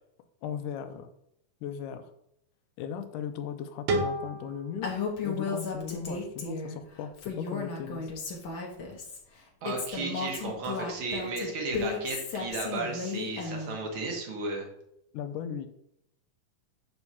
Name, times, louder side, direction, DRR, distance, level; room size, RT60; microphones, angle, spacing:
voice 1, 0.4-1.1 1.6-2.1 2.8-4.9 5.2-8.1 15.1-15.7, left 8 dB, 85° left, 9 dB, 2.1 m, -37 dB
sound 1, 3.9-6.7, right 2 dB, 75° right, 2.3 m, -35 dB
Female speech woman speaking, 4.8-6.8 7.2-9.2 9.6-13.8, left 5 dB, 55° left, 1.4 m, -34 dB
voice 2, 9.6-14.6, right 3 dB, 50° right, 1 dB, 1.7 m, -34 dB
7.7 x 6.3 x 2.8 m, 0.77 s
omnidirectional pair, 3.8 m